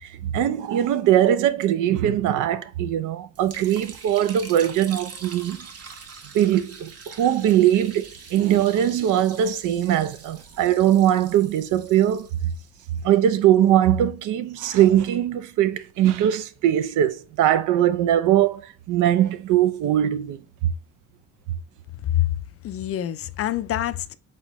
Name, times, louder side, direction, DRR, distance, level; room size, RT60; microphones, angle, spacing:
voice 1, 0.0-5.7 6.3-12.5 13.0-20.4, right 11 dB, 85° right, 0.5 m, -21 dB
Liquid, 3.3-13.5, right 5 dB, 55° right, 0.8 m, -44 dB
voice 2, 22.6-24.1, left 12 dB, 50° left, 0.4 m, -25 dB
4.2 x 3.6 x 3.0 m
cardioid pair, 90°, 30 cm